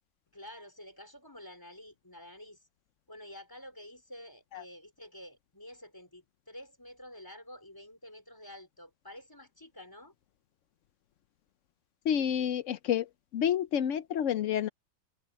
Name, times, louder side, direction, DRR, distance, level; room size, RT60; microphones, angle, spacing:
voice 1, 0.3-2.6 3.1-10.1, left 1 dB, 10° left, 4.4 m, -49 dB
voice 2, 12.0-14.7, left 9 dB, 75° left, 0.7 m, -29 dB
omnidirectional pair, 2.0 m